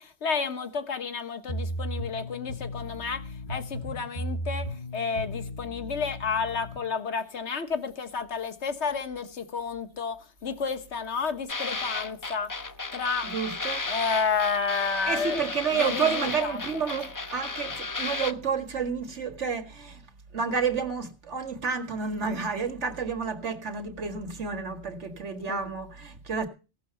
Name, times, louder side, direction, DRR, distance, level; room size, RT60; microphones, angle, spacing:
voice 1, 0.0-12.6 12.9-13.3 13.8-16.8 25.5-25.7, left 5 dB, 75° left, 1.6 m, -31 dB
sound 1, 1.5-6.8, equal, 45° left, 4.9 m, -35 dB
sound 2, 11.5-18.3, left 3 dB, 25° left, 0.5 m, -34 dB
voice 2, 13.2-13.8 15.1-20.0 20.3-26.5, right 6 dB, 85° right, 2.1 m, -30 dB
17.0 x 6.8 x 6.8 m
omnidirectional pair, 1.2 m